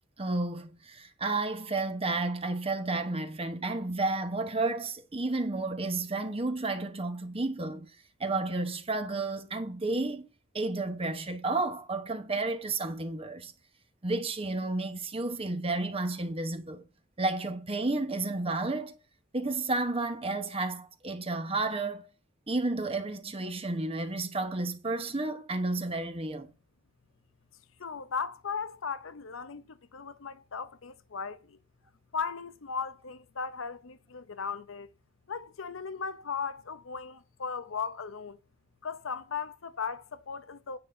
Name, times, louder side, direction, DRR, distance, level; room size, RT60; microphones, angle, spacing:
voice 1, 0.2-7.9 8.2-10.2 10.5-13.5 14.0-16.8 17.2-18.9 19.3-22.1 22.5-26.5, right 2 dB, 30° right, 1.0 m, -31 dB
voice 2, 27.8-31.6 32.1-34.9 35.3-38.4 38.8-40.8, left 6 dB, 75° left, 0.7 m, -37 dB
9.7 x 4.1 x 6.8 m
head